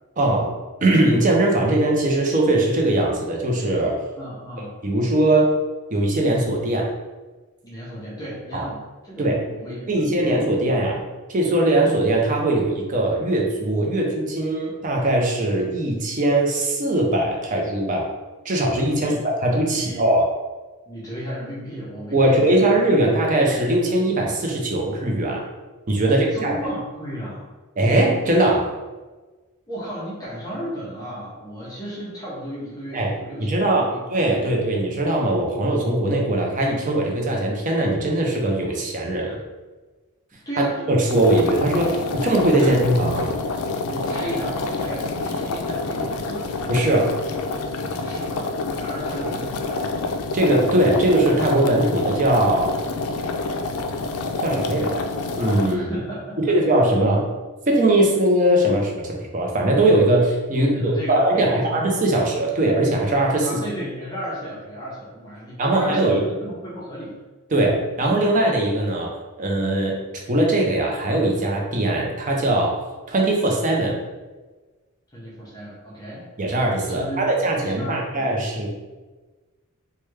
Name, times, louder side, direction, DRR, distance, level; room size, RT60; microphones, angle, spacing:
voice 1, 0.2-0.5 0.8-4.0 4.8-5.5 5.9-6.9 8.5-8.7 9.2-9.4 9.9-18.1 18.4-20.3 22.1-25.4 25.9-26.5 27.8-28.7 32.9-33.1 33.4-39.4 40.6-43.4 46.7-47.1 50.3-52.7 54.4-55.0 55.4-55.9 56.4-57.3 57.7-63.6 65.6-66.2 67.5-70.0 70.3-72.8 73.1-74.0 76.4-78.7, right 1 dB, 35° right, -1 dB, 0.5 m, -20 dB
voice 2, 4.2-4.7 7.6-10.4 18.9-19.2 19.7-20.1 20.9-23.0 26.0-27.5 29.7-34.0 34.4-34.6 40.5-40.9 41.2-41.3 42.6-42.7 43.8-46.5 47.9-49.8 55.7-56.6 60.6-61.9 63.4-67.1 75.1-76.2 76.9-77.3 77.6-78.5, equal, 15° left, -8 dB, 0.7 m, -34 dB
sound 1, 41.1-55.8, left 3 dB, 80° left, 0.3 m, -27 dB
3.3 x 2.2 x 3.1 m, 1.3 s
head